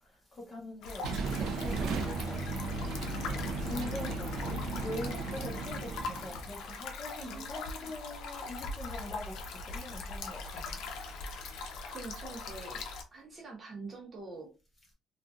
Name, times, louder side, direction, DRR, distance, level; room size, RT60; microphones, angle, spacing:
voice 1, 0.3-1.1 1.5-2.6 3.3-10.9, left 1 dB, 20° left, 1.1 m, -43 dB
sound 1, 0.8-13.0, left 3 dB, 75° left, 0.6 m, -41 dB
sound 2, 1.0-6.5, right 3 dB, 60° right, 0.4 m, -35 dB
voice 2, 7.2-7.9 11.9-14.5, right 3 dB, 25° right, 0.7 m, -46 dB
3.7 x 2.3 x 2.3 m
cardioid pair, 170°, 0 cm